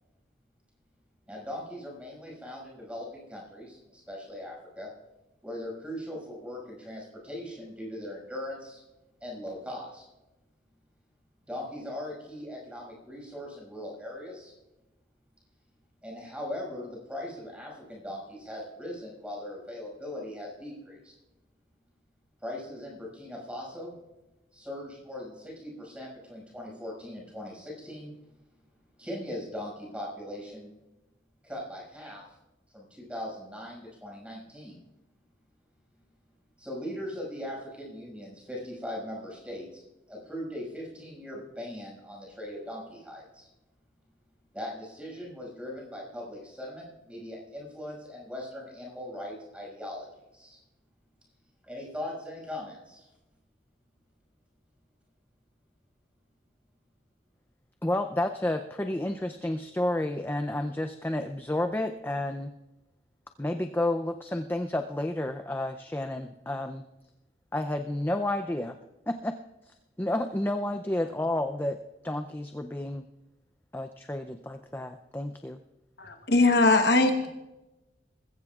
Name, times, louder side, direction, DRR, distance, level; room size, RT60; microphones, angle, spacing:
voice 1, 1.3-4.9 5.4-8.8 9.2-10.1 11.5-14.5 16.0-21.1 22.4-24.0 24.5-28.1 29.0-30.7 31.4-32.2 32.7-34.8 36.6-39.8 40.1-43.5 44.5-50.1 50.3-50.6 51.6-53.0 77.2-77.3, left 1 dB, 5° right, -2 dB, 5.8 m, -40 dB
voice 2, 57.8-62.5 63.4-66.8 67.5-68.8 69.1-69.3 70.0-71.8 72.0-73.0 73.7-75.6, left 1 dB, 10° left, 7 dB, 0.4 m, -30 dB
voice 3, 76.0-77.3, left 2 dB, 60° left, 5 dB, 1.1 m, -21 dB
20.5 x 15.5 x 2.4 m, 1.0 s
head